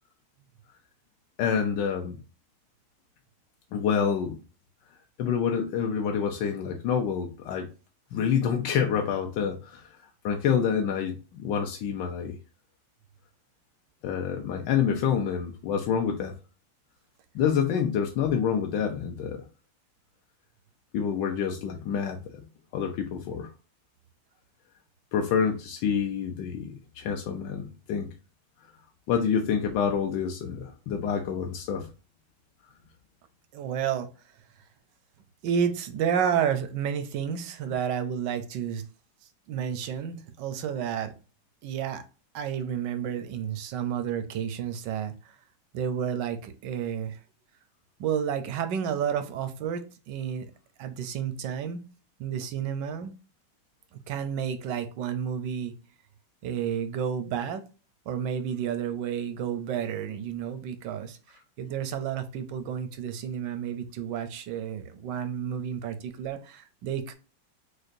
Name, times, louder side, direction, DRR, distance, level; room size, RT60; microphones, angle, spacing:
voice 1, 1.4-2.2 3.7-4.4 5.2-7.7 8.1-12.4 14.0-16.3 17.3-19.4 20.9-22.2 22.7-23.5 25.1-28.1 29.1-31.9, left 7 dB, 75° left, 1.0 m, -27 dB
voice 2, 33.5-34.1 35.4-38.8 39.5-41.1 41.6-42.0 42.3-45.1 45.7-47.2 48.0-50.5 50.8-51.8 52.2-53.1 54.1-55.7 56.4-57.6 58.1-61.2 61.6-67.1, right 8 dB, 75° right, 1.1 m, -31 dB
6.3 x 2.2 x 2.6 m
omnidirectional pair, 2.3 m